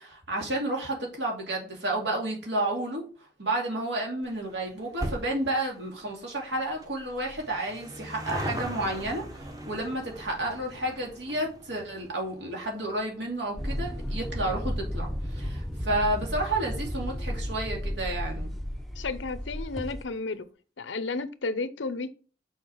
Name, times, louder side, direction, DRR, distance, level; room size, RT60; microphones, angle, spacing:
voice 1, 0.0-3.0 3.4-18.5, right 1 dB, 75° right, 2.5 m, -31 dB
sound 1, 4.2-17.0 17.3-17.4 18.3-18.4 18.6-18.7 18.9-19.0, equal, 20° right, 1.0 m, -41 dB
sound 2, 13.6-20.0, equal, ahead, 0.6 m, -33 dB
voice 2, 19.0-20.5 20.8-22.1, left 3 dB, 90° left, 0.7 m, -32 dB
6.5 x 5.0 x 4.5 m
head